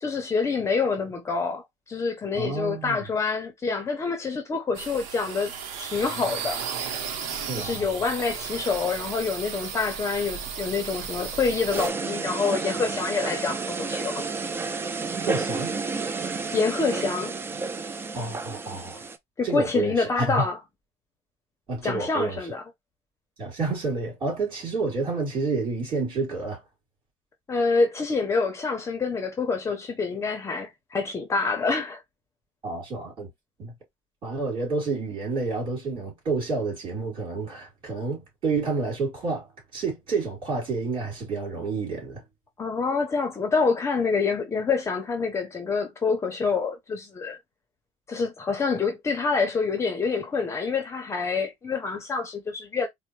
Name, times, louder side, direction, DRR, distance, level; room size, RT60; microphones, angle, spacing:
voice 1, 0.0-6.6 7.5-14.3 16.5-17.3 19.4-20.6 21.8-22.6 27.5-32.0 42.6-47.4 48.1-52.9, left 4 dB, 20° left, 0.7 m, -27 dB
voice 2, 2.4-3.0 7.5-7.9 15.3-15.7 18.1-19.0 19.4-20.3 21.7-22.4 23.4-26.6 32.6-33.3 33.6-33.7 34.2-39.5 39.7-42.2, right 4 dB, 40° right, 3.1 m, -29 dB
sound 1, 4.7-11.9, right 7 dB, 90° right, 0.8 m, -34 dB
sound 2, 11.7-19.2, right 4 dB, 20° right, 0.4 m, -31 dB
4.2 x 2.1 x 3.1 m
cardioid pair, 145°, 12 cm